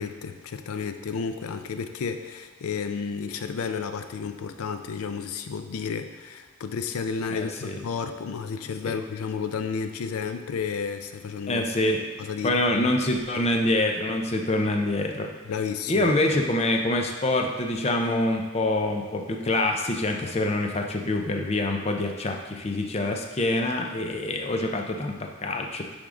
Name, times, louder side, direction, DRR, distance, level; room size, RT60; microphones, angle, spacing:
voice 1, 0.0-11.6 12.2-12.9 15.5-16.1, left 5 dB, 85° left, 9 dB, 0.4 m, -32 dB
voice 2, 7.3-7.8 8.8-8.9 11.5-12.0 12.4-15.3 15.9-25.8, left 1 dB, 30° left, 3 dB, 0.5 m, -25 dB
10.0 x 3.5 x 3.7 m, 1.3 s
head